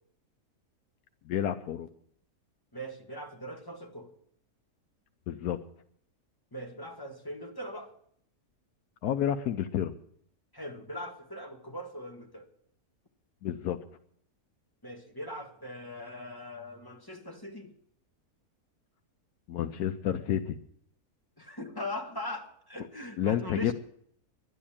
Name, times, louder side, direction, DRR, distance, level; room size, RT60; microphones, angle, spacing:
voice 1, 1.3-1.9 5.3-5.6 9.0-9.9 13.4-13.8 19.5-20.6 23.2-23.7, left 10 dB, 85° left, 7 dB, 1.3 m, -30 dB
voice 2, 2.7-4.1 6.5-7.9 10.5-12.5 14.8-17.7 21.4-23.7, left 1 dB, 15° left, 3 dB, 1.6 m, -40 dB
11.0 x 11.0 x 8.6 m, 0.66 s
omnidirectional pair, 1.6 m